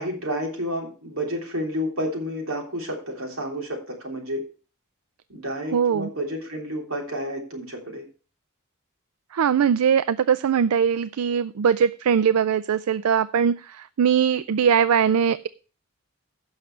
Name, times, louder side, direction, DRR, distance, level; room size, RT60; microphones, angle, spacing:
voice 1, 0.0-4.4 5.3-8.0, equal, 70° right, 1 dB, 3.2 m, -30 dB
voice 2, 5.7-6.1 9.3-15.5, right 7 dB, 85° right, 16 dB, 0.4 m, -21 dB
16.0 x 6.5 x 3.2 m, 0.38 s
head